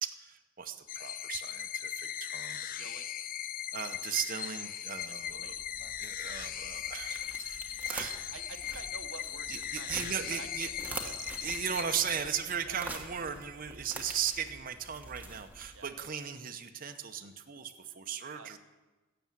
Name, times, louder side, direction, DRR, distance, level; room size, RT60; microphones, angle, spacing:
voice 1, 0.0-2.9 3.7-5.5 6.0-8.2 8.7-8.8 9.5-10.7 11.0-18.6, right 8 dB, 45° right, 6 dB, 0.8 m, -37 dB
sound 1, 0.9-12.8, left 10 dB, 45° left, 0.5 m, -39 dB
voice 2, 2.5-3.1 5.1-6.0 8.3-9.9 10.3-11.2 12.7-12.8 15.7-15.9 18.3-18.6, right 5 dB, 90° right, 8 dB, 0.9 m, -50 dB
sound 2, 5.1-16.1, right 2 dB, 10° right, 1.2 m, -46 dB
17.0 x 6.9 x 7.4 m, 1.2 s
head